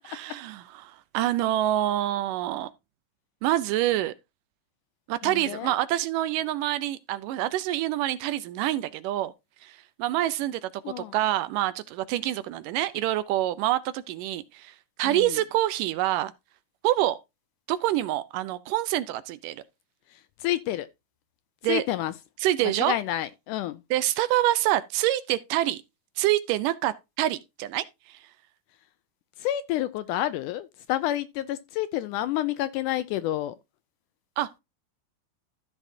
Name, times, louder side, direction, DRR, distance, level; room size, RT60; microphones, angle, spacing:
voice 1, 0.1-2.7 3.4-4.1 5.1-9.3 9.6-16.3 16.8-17.2 17.7-19.6 21.6-21.8 22.4-23.0 23.9-25.8 26.2-28.2 34.4-34.6, right 14 dB, 80° right, 2.1 m, -26 dB
voice 2, 5.2-5.8 10.8-11.2 15.0-15.4 20.1-20.9 21.7-22.1 22.8-23.8 29.4-33.6, left 13 dB, 80° left, 1.9 m, -29 dB
14.5 x 6.2 x 2.7 m
omnidirectional pair, 4.0 m